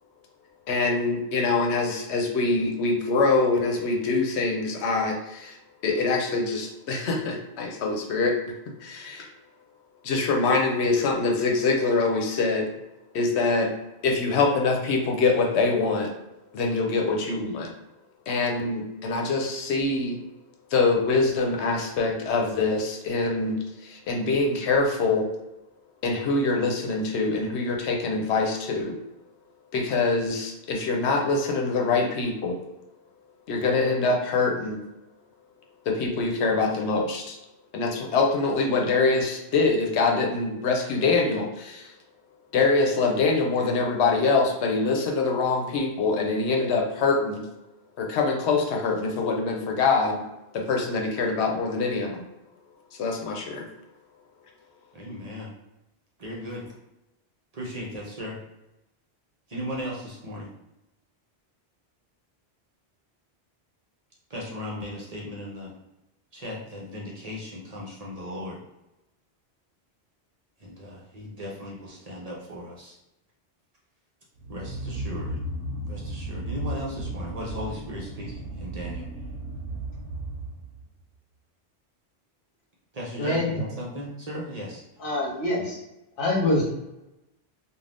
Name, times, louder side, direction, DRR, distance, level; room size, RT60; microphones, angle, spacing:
voice 1, 0.7-5.6 5.8-8.3 8.8-9.3 10.0-12.6 13.1-13.7 14.0-16.1 16.5-17.7 18.3-20.2 20.7-23.6 23.8-25.3 26.0-29.0 29.7-32.6 33.5-34.8 35.9-37.4 37.7-41.9 42.5-47.4 48.0-50.2 50.5-52.2 53.0-53.7, left 3 dB, 85° left, 1 dB, 0.9 m, -24 dB
voice 2, 54.9-55.5 56.2-56.7 57.5-58.4 59.5-60.5 64.3-65.7 66.3-68.6 70.6-73.0 74.5-75.4 75.9-79.1 82.9-84.8, equal, 45° right, -4 dB, 0.6 m, -36 dB
sound 1, 74.4-80.9, right 1 dB, 75° right, 0.8 m, -35 dB
voice 3, 83.2-83.6 85.0-85.8 86.2-86.6, left 1 dB, 60° left, -3 dB, 1.0 m, -25 dB
2.5 x 2.3 x 3.3 m, 0.94 s
omnidirectional pair, 1.1 m